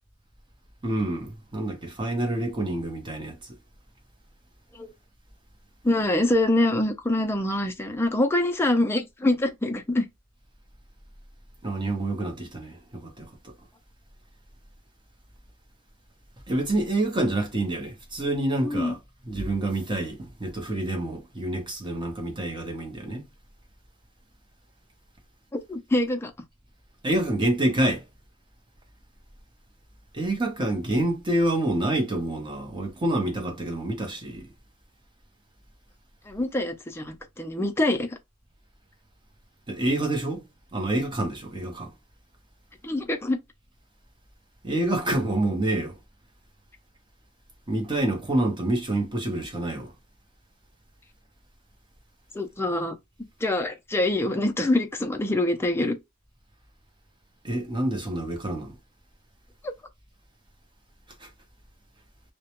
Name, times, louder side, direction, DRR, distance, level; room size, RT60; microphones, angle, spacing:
voice 1, 0.8-3.4 11.6-13.5 16.5-19.0 19.3-23.3 27.0-28.0 30.1-34.4 39.7-40.4 40.7-41.9 44.6-46.0 47.7-49.9 57.4-58.8 61.2-61.3, right 1 dB, 25° right, 0.7 m, -27 dB
voice 2, 5.8-10.1 18.6-18.9 25.5-26.3 36.3-38.2 42.8-43.4 52.3-53.0 53.4-56.0 59.6-59.7, left 1 dB, 10° left, 0.4 m, -25 dB
2.2 x 2.1 x 2.9 m
head